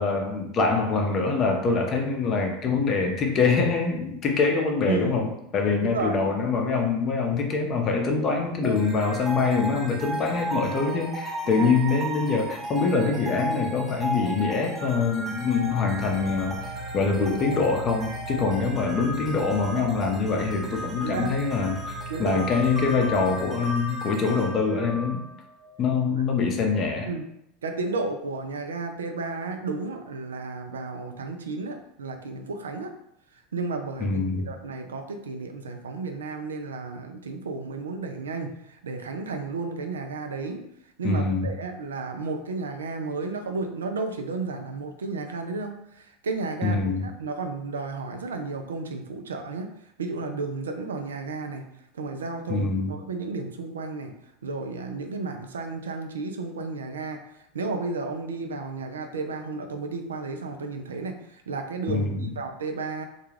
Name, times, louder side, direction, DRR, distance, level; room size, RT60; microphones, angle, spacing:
voice 1, 0.0-16.6 16.9-21.8 22.2-25.2 25.8-27.1 34.0-34.5 41.0-41.5 46.6-47.1 52.5-52.9 61.9-62.3, left 4 dB, 40° left, 3 dB, 0.6 m, -24 dB
voice 2, 4.8-5.2 5.8-6.3 11.5-11.7 21.0-21.3 22.1-22.4 26.1-26.2 27.1-27.2 27.6-32.9 33.5-34.2 34.5-40.6 41.0-49.7 50.0-51.7 51.9-54.1 54.4-57.2 57.5-63.0, right 3 dB, 80° right, 5 dB, 0.3 m, -32 dB
sound 1, 8.6-25.8, equal, 5° right, 0.7 m, -35 dB
sound 2, 15.6-23.5, right 2 dB, 90° left, 0.3 m, -40 dB
2.3 x 2.3 x 3.1 m, 0.79 s
hypercardioid pair, 85°, 0 cm